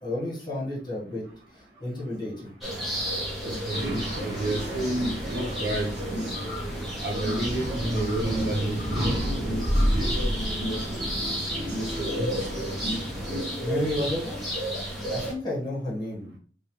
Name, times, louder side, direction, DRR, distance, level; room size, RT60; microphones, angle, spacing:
voice 1, 0.0-1.3 1.5-2.5 13.6-14.4 15.1-16.3, left 1 dB, 25° left, -6 dB, 1.6 m, -31 dB
sound 1, 2.6-15.3, equal, ahead, 1.2 m, -33 dB
voice 2, 3.4-6.3 7.0-9.0 9.9-10.3 10.7-10.8 11.8-12.3, right 1 dB, 85° right, -1 dB, 1.3 m, -31 dB
sound 2, 3.7-13.4, equal, 40° right, 1.3 m, -30 dB
sound 3, 6.3-6.8 7.1-7.6 7.9-8.3 8.8-9.2 9.6-10.1, left 4 dB, 75° left, 0.6 m, -42 dB
3.4 x 3.2 x 3.1 m, 0.42 s
head